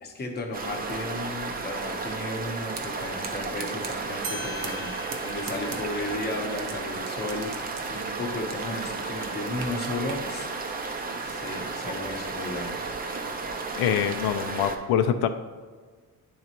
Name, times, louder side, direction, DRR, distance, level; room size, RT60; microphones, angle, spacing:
voice 1, 0.0-7.5 7.9-10.5 11.2-12.8, left 2 dB, 25° left, 1 dB, 0.9 m, -34 dB
sound 1, 0.5-14.8, right 4 dB, 25° right, 0.4 m, -33 dB
sound 2, 2.7-2.9 3.2-4.0 4.4-4.9 5.1-6.7 7.1-8.7 9.0-10.2, right 5 dB, 60° right, 0.9 m, -39 dB
sound 3, 3.9-9.3, right 1 dB, 85° right, 1.2 m, -43 dB
voice 2, 13.7-15.3, left 9 dB, 85° left, 7 dB, 0.5 m, -24 dB
11.0 x 3.9 x 2.9 m, 1.5 s
cardioid pair, 175°, 37 cm